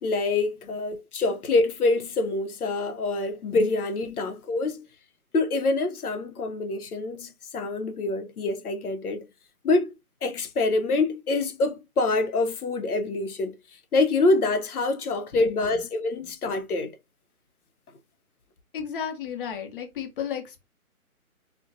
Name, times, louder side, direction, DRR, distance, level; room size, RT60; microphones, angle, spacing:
voice 1, 0.0-4.8 5.3-9.3 9.6-9.9 10.2-13.5 13.9-17.0, left 3 dB, 90° left, 0.7 m, -25 dB
voice 2, 18.7-20.6, left 8 dB, 40° left, 0.7 m, -33 dB
2.5 x 2.2 x 2.4 m
hypercardioid pair, 145°, 43 cm